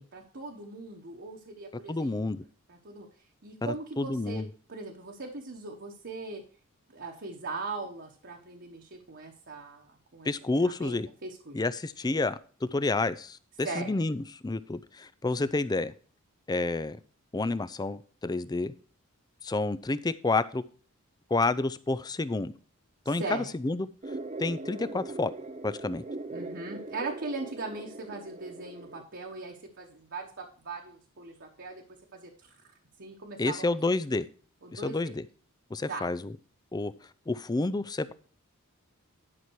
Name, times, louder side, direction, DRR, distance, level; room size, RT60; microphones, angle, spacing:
voice 1, 0.0-2.1 2.7-3.1 3.4-4.4 4.7-6.4 6.9-10.3 10.8-11.6 13.6-13.9 23.0-23.5 26.3-31.8 32.1-32.6 33.0-33.8 34.6-35.1 35.9-36.1, right 3 dB, 50° right, 0 dB, 1.2 m, -39 dB
voice 2, 1.9-2.4 3.6-4.5 10.2-11.1 11.5-12.4 12.7-15.9 16.5-17.0 17.3-18.7 19.4-20.6 21.3-22.5 23.1-23.9 24.4-25.3 25.6-26.0 33.4-34.3 34.7-35.2 35.7-36.3 36.7-36.9 37.3-38.1, left 3 dB, 20° left, 15 dB, 0.4 m, -29 dB
sound 1, 24.0-29.0, right 2 dB, 30° right, 0.6 m, -40 dB
11.0 x 5.9 x 4.6 m, 0.42 s
head